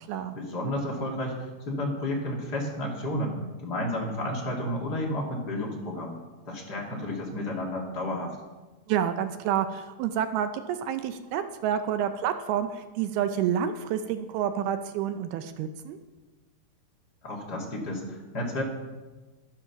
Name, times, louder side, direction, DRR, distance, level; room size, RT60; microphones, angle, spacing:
voice 1, 0.3-6.2 6.5-8.4 17.2-18.6, left 1 dB, 30° left, -2 dB, 2.1 m, -32 dB
voice 2, 8.9-16.0, right 9 dB, 80° right, 9 dB, 2.5 m, -29 dB
12.0 x 12.0 x 5.9 m, 1.2 s
omnidirectional pair, 4.8 m